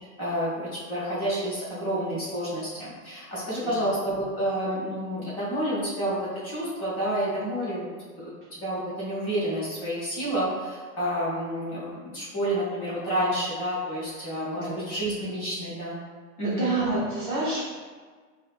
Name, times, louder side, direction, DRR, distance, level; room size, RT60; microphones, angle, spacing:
voice 1, 0.2-6.2 6.4-7.9 8.1-16.0 16.4-16.7, equal, 25° left, -9 dB, 0.8 m, -29 dB
voice 2, 14.2-14.7 16.4-17.6, right 3 dB, 35° right, -7 dB, 0.6 m, -28 dB
4.6 x 2.1 x 2.4 m, 1.5 s
supercardioid pair, 180°, 44 cm